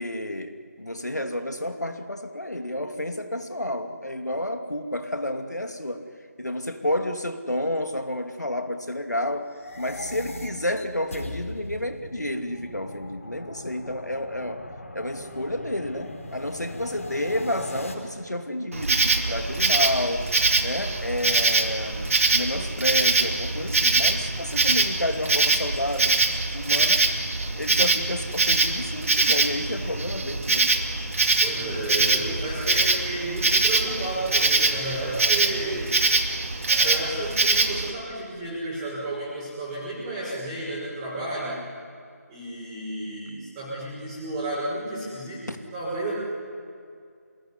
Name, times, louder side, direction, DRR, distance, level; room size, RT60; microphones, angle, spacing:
voice 1, 0.0-6.0 6.4-14.6 14.9-20.3 20.6-26.2 26.5-27.1 27.5-30.7 45.5-45.6, left 1 dB, 85° left, 6 dB, 2.6 m, -30 dB
sound 1, 9.4-17.9, left 2 dB, 55° left, 5.2 m, -40 dB
Insect, 18.7-37.9, right 3 dB, 55° right, 2.4 m, -23 dB
voice 2, 31.4-35.9 36.7-41.6 42.3-46.1, right 2 dB, 15° right, -9 dB, 5.8 m, -32 dB
27.5 x 20.5 x 10.0 m, 2.3 s
figure-of-eight pair, 160°, 9 cm